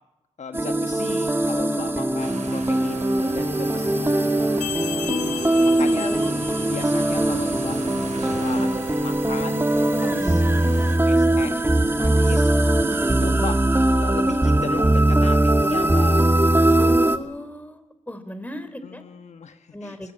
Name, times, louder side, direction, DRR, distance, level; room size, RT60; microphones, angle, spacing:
voice 1, 0.4-4.1 4.8-6.1 6.7-7.8 8.2-8.7 9.0-9.7 10.0-11.7 12.0-12.5 13.2-13.6 14.0-17.2 18.8-20.1, left 6 dB, 65° left, 8 dB, 1.3 m, -36 dB
sound 1, 0.5-17.2, right 1 dB, 15° right, 2.2 m, -20 dB
sound 2, 2.2-11.0, right 4 dB, 80° right, 7.2 m, -39 dB
voice 2, 2.3-3.1 3.8-4.0 6.0-6.8 10.1-10.5 12.9-13.3 16.8-17.8 18.1-19.0 19.7-20.1, left 1 dB, 10° left, 11 dB, 4.4 m, -36 dB
sound 3, 4.6-7.2, left 12 dB, 90° left, 1.0 m, -35 dB
22.0 x 21.5 x 8.8 m, 0.96 s
supercardioid pair, 50°, 13 cm